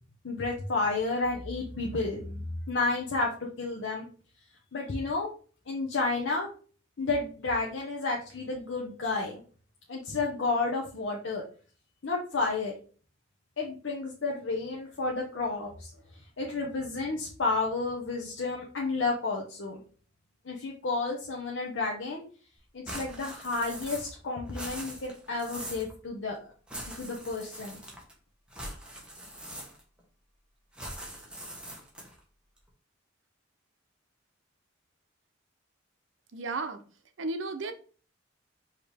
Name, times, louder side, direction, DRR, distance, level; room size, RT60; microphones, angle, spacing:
voice 1, 0.2-4.1 4.7-5.3 5.7-6.5 7.0-9.4 9.9-11.4 12.0-12.7 13.6-15.9 16.4-19.8 20.5-22.2 22.7-26.5 27.0-27.8, left 3 dB, 75° left, 0.7 m, -31 dB
sound 1, 22.9-24.2 24.5-25.9 26.7-28.1 28.5-30.0 30.7-32.2, right 1 dB, 5° right, 1.0 m, -42 dB
voice 2, 36.3-36.8 37.2-37.7, right 3 dB, 80° right, 0.6 m, -33 dB
4.8 x 2.9 x 3.4 m
head